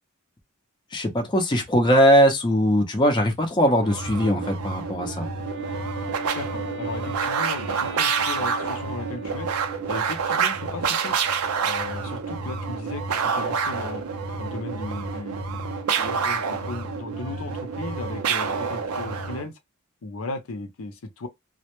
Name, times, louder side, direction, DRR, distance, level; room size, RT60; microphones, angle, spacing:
voice 1, 0.9-5.3, equal, 20° left, 0.5 m, -20 dB
sound 1, 3.8-19.5, right 5 dB, 90° right, 0.5 m, -28 dB
Wind instrument woodwind instrument, 5.4-10.1, right 2 dB, 55° right, 0.7 m, -37 dB
voice 2, 6.3-9.5 9.9-11.2 11.6-14.0 14.4-19.6 20.0-21.3, left 3 dB, 70° left, 0.5 m, -36 dB
2.1 x 2.1 x 2.9 m
head